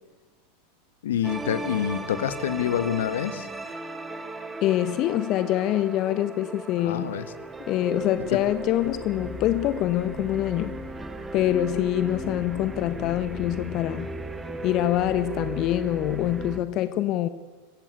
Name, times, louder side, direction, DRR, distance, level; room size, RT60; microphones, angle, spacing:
voice 1, 1.0-3.5 6.8-7.3 8.3-8.4, left 10 dB, 70° left, 1.5 m, -27 dB
sound 1, 1.2-16.6, right 2 dB, 15° right, 2.3 m, -36 dB
voice 2, 4.6-7.2 7.7-10.8 11.3-14.1 14.6-17.3, left 13 dB, 45° left, 1.2 m, -25 dB
26.5 x 15.0 x 8.3 m
hypercardioid pair, 90°, 0 cm